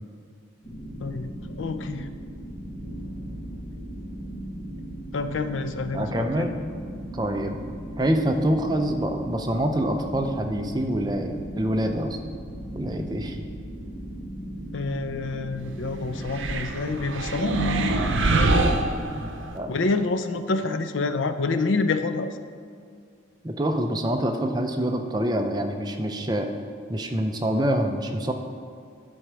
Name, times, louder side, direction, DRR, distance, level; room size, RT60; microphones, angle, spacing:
sound 1, 0.6-16.6, right 1 dB, 40° left, 1.5 m, -37 dB
voice 1, 1.0-2.1 5.1-6.5 14.7-18.5 19.7-22.4, left 3 dB, 75° left, 9 dB, 0.5 m, -28 dB
voice 2, 5.9-6.5 7.1-7.6 8.0-12.2 12.7-13.4 19.1-19.3 19.5-19.7 23.4-26.5 26.9-28.3, right 1 dB, 20° right, 4 dB, 0.5 m, -26 dB
sound 2, 16.2-19.6, right 2 dB, 75° right, 0.7 m, -24 dB
9.9 x 4.4 x 6.2 m, 2.2 s
head